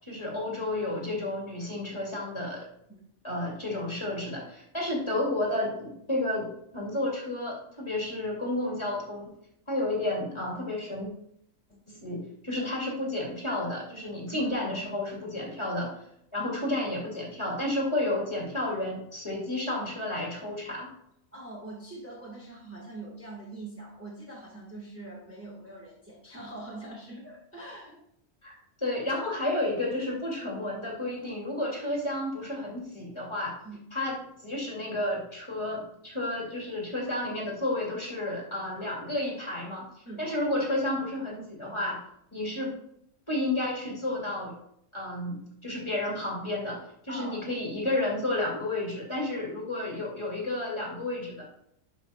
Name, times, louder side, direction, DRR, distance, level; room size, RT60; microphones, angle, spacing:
voice 1, 0.1-2.7 3.2-9.3 9.7-11.1 12.0-15.9 16.3-20.9 28.4-33.5 33.9-34.2 34.4-39.9 40.2-42.0 42.3-42.8 43.3-44.5 44.9-51.4, left 1 dB, 20° left, -4 dB, 2.3 m, -31 dB
voice 2, 21.3-28.0 33.6-33.8 40.0-40.2 47.1-47.4, right 2 dB, 10° right, -4 dB, 1.6 m, -43 dB
11.5 x 5.1 x 2.3 m, 0.72 s
omnidirectional pair, 1.4 m